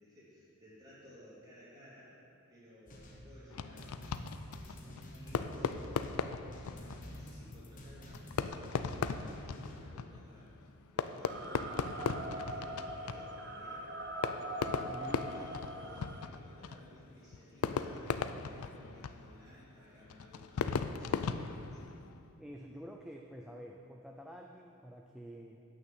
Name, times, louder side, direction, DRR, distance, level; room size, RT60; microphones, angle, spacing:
voice 1, 0.0-2.2 2.5-6.0 6.4-13.9 14.4-21.8, equal, 20° right, -9 dB, 2.8 m, -58 dB
sound 1, 2.9-9.8, equal, 35° left, 1.1 m, -50 dB
Fireworks, 3.5-22.3, left 5 dB, 80° left, 0.4 m, -39 dB
sound 2, 11.2-16.3, right 1 dB, 50° right, 0.6 m, -42 dB
voice 2, 14.8-15.3 22.4-25.6, equal, 5° right, 1 dB, 0.3 m, -49 dB
8.8 x 6.2 x 7.3 m, 2.6 s
head